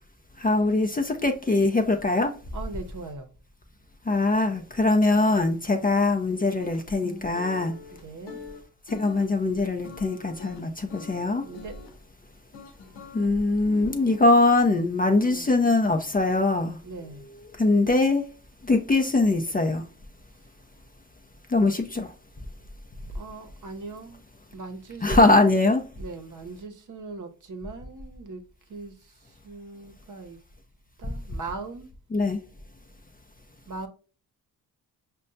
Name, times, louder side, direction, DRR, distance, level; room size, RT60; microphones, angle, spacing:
voice 1, 0.4-2.3 4.1-7.7 8.9-11.4 13.1-16.8 17.6-18.2 18.6-19.8 21.5-22.1 25.0-25.8 32.1-32.4, left 2 dB, 20° left, 0.5 m, -22 dB
voice 2, 2.5-3.3 8.0-8.4 11.4-11.8 15.2-15.5 16.8-17.2 23.1-24.2 24.5-25.4 26.0-28.4 28.7-30.4 31.0-31.9 33.7-33.9, right 3 dB, 50° right, 0.8 m, -40 dB
sound 1, 6.6-12.0 12.5-13.3 13.6-14.6, left 4 dB, 85° left, 0.8 m, -44 dB
5.2 x 2.2 x 2.6 m
supercardioid pair, 65°, 40 cm